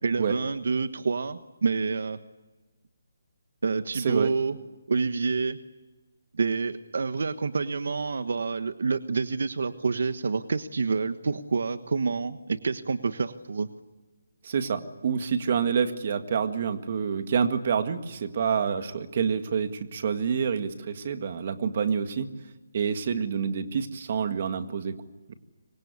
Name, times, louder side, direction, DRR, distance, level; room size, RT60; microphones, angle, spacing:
voice 1, 0.0-2.2 3.6-4.6 4.9-5.6 6.3-13.7, right 4 dB, 65° right, 11 dB, 1.3 m, -28 dB
voice 2, 3.9-4.3 14.4-22.3 22.7-24.9 25.3-25.4, right 6 dB, 35° right, 9 dB, 1.9 m, -27 dB
27.0 x 24.5 x 8.3 m, 1.2 s
hypercardioid pair, 175°, 0 cm